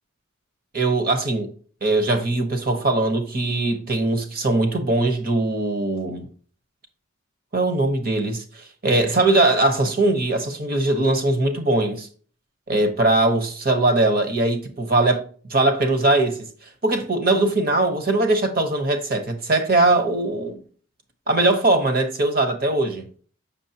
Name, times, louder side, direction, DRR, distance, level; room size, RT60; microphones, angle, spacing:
voice 1, 0.7-1.5 1.8-6.3 7.5-12.1 12.7-16.4 16.8-20.6 21.3-23.1, right 2 dB, 45° right, 1.1 m, -21 dB
7.1 x 6.2 x 2.8 m
head